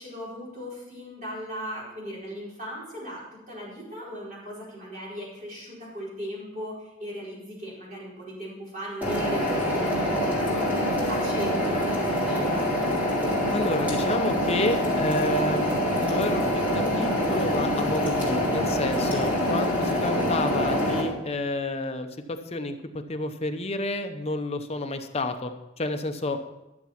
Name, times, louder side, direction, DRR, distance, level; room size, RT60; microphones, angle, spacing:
voice 1, 0.0-3.2 3.5-12.7, equal, 40° right, -6 dB, 4.9 m, -37 dB
sound 1, 9.0-21.0, equal, 10° right, 3.5 m, -25 dB
voice 2, 13.5-26.5, left 2 dB, 30° left, 6 dB, 0.8 m, -30 dB
12.0 x 7.0 x 5.9 m, 0.96 s
head